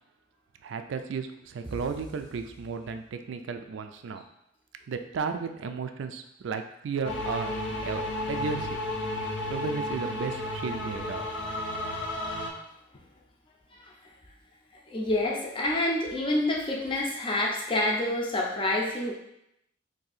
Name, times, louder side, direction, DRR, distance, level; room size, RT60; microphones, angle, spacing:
voice 1, 0.6-4.2 4.9-7.5 7.8-8.0 8.3-8.8 9.5-11.3, right 5 dB, 75° right, 7 dB, 0.3 m, -34 dB
sound 1, 1.6-3.5, right 1 dB, 30° right, 0.6 m, -45 dB
sound 2, 7.0-12.5, left 1 dB, 70° left, 0.6 m, -32 dB
voice 2, 14.9-19.1, left 1 dB, 25° left, -1 dB, 0.5 m, -27 dB
2.7 x 2.6 x 4.0 m, 0.79 s
head